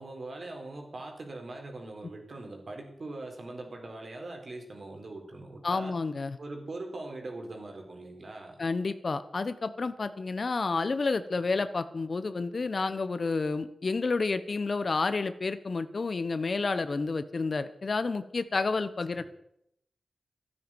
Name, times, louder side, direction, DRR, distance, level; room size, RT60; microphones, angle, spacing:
voice 1, 0.0-6.0 6.4-8.6 19.1-19.2, right 2 dB, 65° right, 2 dB, 4.2 m, -41 dB
voice 2, 5.6-6.4 8.6-19.2, left 3 dB, 60° left, 12 dB, 1.1 m, -30 dB
13.0 x 9.8 x 9.1 m, 0.76 s
cardioid pair, 50°, 0 cm